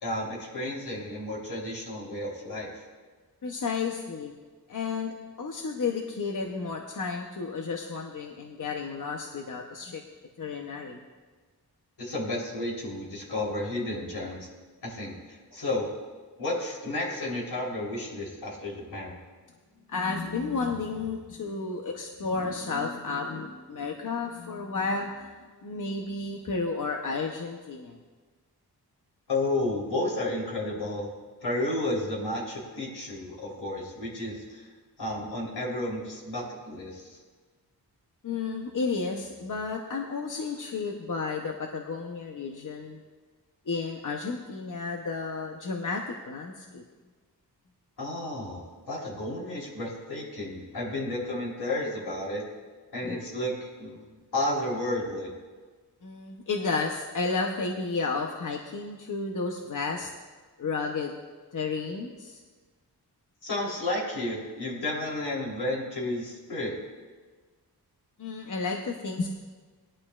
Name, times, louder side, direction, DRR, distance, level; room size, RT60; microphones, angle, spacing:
voice 1, 0.0-2.7 12.0-14.5 14.8-15.9 16.4-19.2 29.3-31.1 31.4-34.7 35.0-37.2 48.0-52.4 52.9-54.0 54.3-55.3 63.4-66.7, left 1 dB, 80° left, -3 dB, 3.6 m, -32 dB
voice 2, 3.4-4.3 4.7-10.0 10.4-11.0 19.9-25.4 25.6-28.0 38.2-43.0 43.7-46.8 53.1-53.2 56.0-60.1 60.6-61.1 61.5-62.4 68.2-69.3, left 4 dB, 50° left, 2 dB, 0.9 m, -32 dB
20.0 x 11.5 x 2.4 m, 1.4 s
wide cardioid pair, 155°, 39 cm